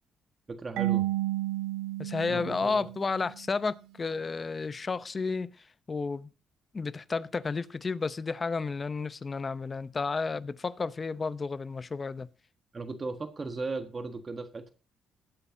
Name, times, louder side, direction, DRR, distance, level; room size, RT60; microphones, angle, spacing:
voice 1, 0.5-1.1 2.3-2.9 12.7-14.7, right 3 dB, 30° right, 1.5 m, -37 dB
Marimba xylophone / Wood, 0.8-3.5, right 17 dB, 90° right, 1.1 m, -32 dB
voice 2, 2.0-5.5 5.9-6.3 6.7-12.3, left 4 dB, 30° left, 0.7 m, -32 dB
19.5 x 8.5 x 2.7 m
cardioid pair, 90°, 0 cm